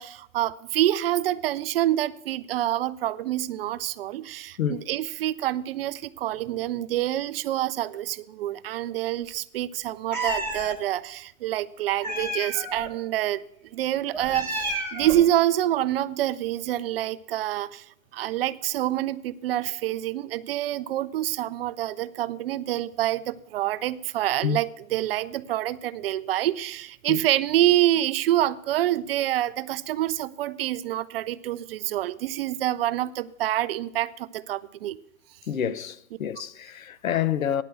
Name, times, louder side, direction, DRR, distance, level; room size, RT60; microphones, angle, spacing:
voice 1, 0.0-13.4 13.7-17.9 18.1-35.0, right 13 dB, 50° right, 0.5 m, -27 dB
Meow, 10.1-10.8 12.0-12.9 14.1-15.3, right 1 dB, 5° left, 1.6 m, -31 dB
voice 2, 35.5-37.6, left 9 dB, 90° left, 0.7 m, -28 dB
9.8 x 5.9 x 7.8 m
hypercardioid pair, 130°, 39 cm